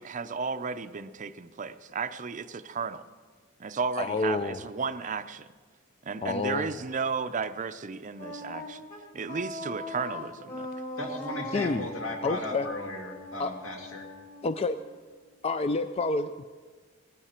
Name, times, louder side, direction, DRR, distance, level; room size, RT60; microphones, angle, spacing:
voice 1, 0.0-3.0 3.6-5.5 6.0-8.8 9.1-10.7, right 5 dB, 40° right, 11 dB, 0.5 m, -33 dB
voice 2, 4.0-4.6 6.2-6.7 11.5-11.9 12.2-12.7 13.4-13.5 14.4-14.8 15.4-16.4, left 3 dB, 30° left, 10 dB, 0.4 m, -28 dB
Wind instrument woodwind instrument, 8.2-15.1, left 2 dB, 45° left, 3.8 m, -40 dB
voice 3, 11.0-14.1, left 1 dB, 75° left, 1 dB, 2.4 m, -36 dB
18.5 x 14.0 x 4.4 m, 1.5 s
head